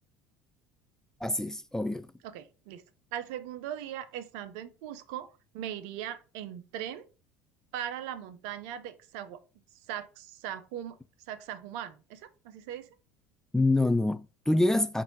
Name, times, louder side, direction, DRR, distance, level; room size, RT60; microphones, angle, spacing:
voice 1, 1.2-2.1 13.5-15.0, left 2 dB, 5° left, 0.3 m, -26 dB
voice 2, 2.2-2.8 3.1-7.1 7.7-9.4 9.9-11.0 11.3-12.9, right 10 dB, 65° right, 0.6 m, -39 dB
4.3 x 2.6 x 4.3 m
hypercardioid pair, 70°, 7 cm